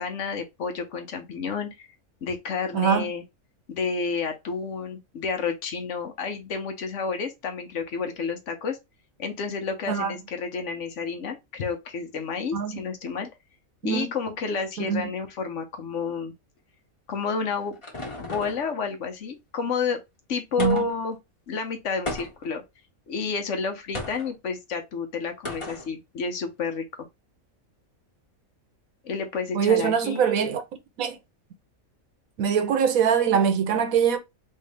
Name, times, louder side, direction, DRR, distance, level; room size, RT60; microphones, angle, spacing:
voice 1, 0.0-1.9 2.2-3.2 3.7-8.8 9.2-13.3 13.8-16.3 17.1-17.8 18.2-20.0 20.3-21.2 21.5-22.6 23.1-27.1 29.0-30.5, left 5 dB, 65° left, 1.0 m, -30 dB
voice 2, 2.7-3.1 9.9-10.1 12.5-12.8 13.8-14.1 14.9-15.0 20.6-20.8 29.5-30.6 31.0-31.2 32.4-34.2, right 7 dB, 80° right, 1.1 m, -23 dB
sound 1, 17.2-18.7 20.6-21.1 22.1-22.6 23.9-24.3 25.5-25.9, left 2 dB, 25° left, 1.0 m, -35 dB
3.2 x 2.8 x 3.3 m
omnidirectional pair, 1.5 m